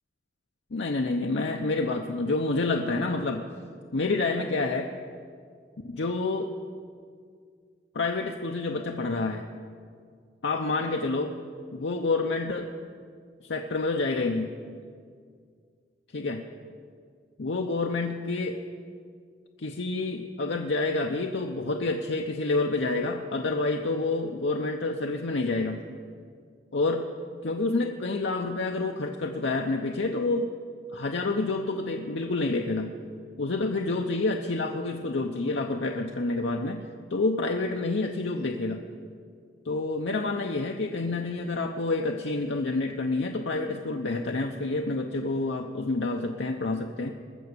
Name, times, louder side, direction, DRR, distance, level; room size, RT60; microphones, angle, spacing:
voice 1, 0.7-3.5 3.9-4.9 5.8-6.5 7.9-9.5 10.4-11.4 11.7-12.7 13.4-14.5 16.1-16.4 17.4-18.6 19.6-25.9 26.7-27.1 27.4-30.5 30.9-33.0 33.4-38.8 39.6-47.1, left 3 dB, 85° left, 3 dB, 0.7 m, -28 dB
20.5 x 7.0 x 6.7 m, 2.1 s
head